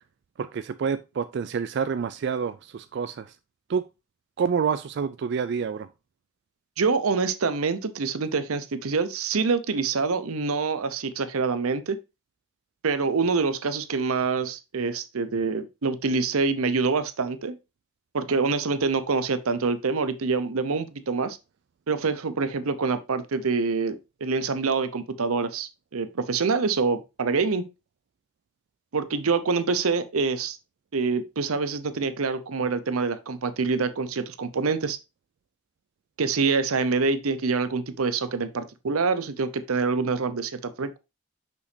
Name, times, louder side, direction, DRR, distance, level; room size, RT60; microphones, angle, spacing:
voice 1, 0.4-3.4 3.7-3.9 4.4-5.9, right 6 dB, 55° right, 0.3 m, -28 dB
voice 2, 6.8-12.0 12.8-17.6 18.1-21.4 21.9-27.7 28.9-30.6 30.9-35.0 36.2-41.0, right 4 dB, 85° right, 0.7 m, -26 dB
6.2 x 5.8 x 2.6 m
head